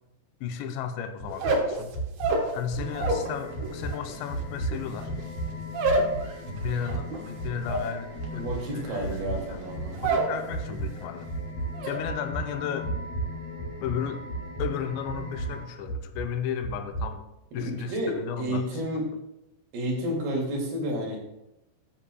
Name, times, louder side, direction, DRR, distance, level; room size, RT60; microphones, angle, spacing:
voice 1, 0.4-2.0 2.5-5.1 6.5-8.5 8.7-9.7 10.0-11.3 11.9-13.0 13.8-14.3 14.6-17.2 17.5-18.9, left 8 dB, 85° left, 8 dB, 2.9 m, -34 dB
sound 1, 1.2-1.6 1.9-2.3 2.7-3.2 3.5-3.9 4.3-4.8 5.1-5.5 5.8-6.2 6.6-7.0 7.4-7.8 8.2-8.6 9.0-9.4 9.7-10.1 10.5-10.9 11.3-11.7 12.0-12.4 12.8-13.3 13.6-14.0 14.3-14.7 15.1-15.5 15.9-16.2 16.6-17.0, right 2 dB, 40° right, 3.6 m, -33 dB
sound 2, 1.3-3.3 3.6-10.4 10.7-11.2 11.5-12.0, right 2 dB, 80° right, 3.7 m, -29 dB
sound 3, 2.8-15.6, left 4 dB, 70° left, 3.8 m, -41 dB
voice 2, 8.3-10.0 17.6-19.1 19.7-21.2, equal, 65° right, -2 dB, 4.1 m, -30 dB
13.5 x 9.9 x 2.3 m, 0.92 s
omnidirectional pair, 5.0 m